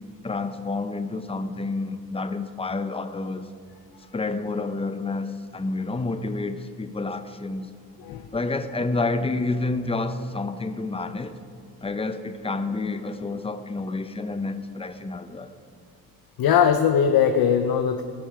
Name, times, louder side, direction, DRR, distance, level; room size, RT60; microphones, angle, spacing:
voice 1, 0.2-3.5 4.1-7.7 8.3-11.4 11.8-15.6, left 3 dB, 15° left, 0.5 m, -29 dB
voice 2, 16.4-18.0, left 8 dB, 70° left, 0.6 m, -20 dB
17.5 x 6.2 x 4.9 m
cardioid pair, 115°, 37 cm